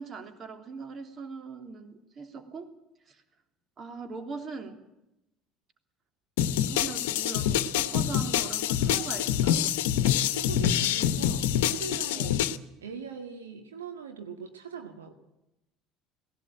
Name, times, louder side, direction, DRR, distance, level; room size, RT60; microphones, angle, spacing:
voice 1, 0.0-2.7 3.1-3.2 3.8-4.8 6.5-9.6 12.1-12.4, right 4 dB, 40° right, 7 dB, 3.1 m, -41 dB
sound 1, 6.4-12.6, left 10 dB, 70° left, 1.0 m, -26 dB
voice 2, 10.3-12.4 12.8-15.1, right 5 dB, 85° right, 5 dB, 1.9 m, -41 dB
18.5 x 17.0 x 9.1 m, 0.90 s
hypercardioid pair, 65°, 0 cm